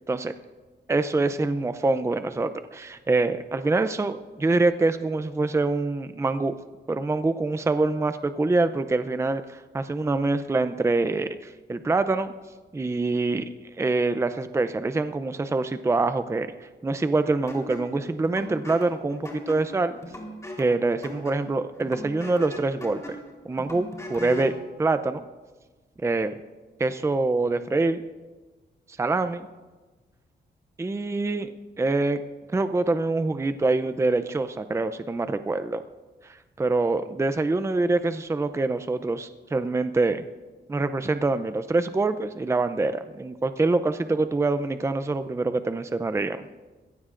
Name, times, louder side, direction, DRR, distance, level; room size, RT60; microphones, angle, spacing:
voice 1, 0.9-6.5 6.9-12.3 12.7-13.4 13.8-19.9 20.6-23.2 23.5-24.5 24.8-25.2 26.0-26.3 26.8-28.0 29.0-29.5 30.8-31.5 31.8-32.2 32.5-35.8 36.2-40.2 40.7-46.4, right 3 dB, 15° right, 10 dB, 0.5 m, -25 dB
sound 1, 17.5-24.6, equal, 15° left, 3.7 m, -39 dB
21.5 x 16.5 x 2.5 m, 1.3 s
cardioid pair, 100°, 18 cm